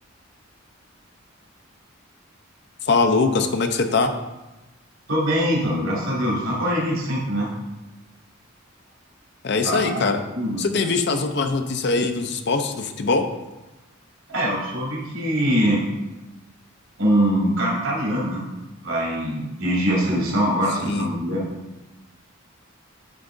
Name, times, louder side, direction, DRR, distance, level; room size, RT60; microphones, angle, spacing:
voice 1, 2.8-4.1 9.4-10.2 10.6-13.3 20.8-21.1, left 4 dB, 55° left, 6 dB, 0.6 m, -22 dB
voice 2, 5.1-7.5 9.6-9.9 10.3-10.6 14.3-15.8 17.0-18.5 18.8-21.5, equal, 85° right, -4 dB, 2.6 m, -23 dB
10.5 x 3.6 x 3.9 m, 1.0 s
head